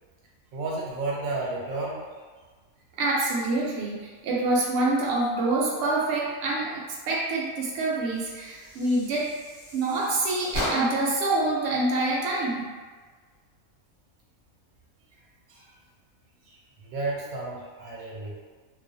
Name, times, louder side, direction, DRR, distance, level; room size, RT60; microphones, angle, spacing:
voice 1, 0.5-2.0 16.4-18.4, right 3 dB, 85° right, -3 dB, 1.0 m, -32 dB
voice 2, 3.0-6.8 7.1-9.3 9.7-12.7, right 2 dB, 65° right, -4 dB, 0.7 m, -26 dB
sound 1, 8.1-11.2, equal, 45° left, 0.9 m, -35 dB
2.4 x 2.1 x 2.5 m, 1.4 s
omnidirectional pair, 1.4 m